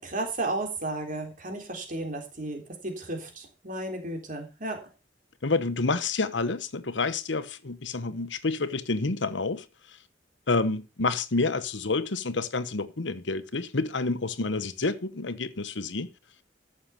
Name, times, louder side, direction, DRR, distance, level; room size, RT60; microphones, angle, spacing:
voice 1, 0.0-4.8, right 2 dB, 45° right, 3.7 m, -33 dB
voice 2, 5.4-9.7 10.5-16.1, left 3 dB, 75° left, 1.1 m, -28 dB
13.5 x 6.8 x 5.7 m
head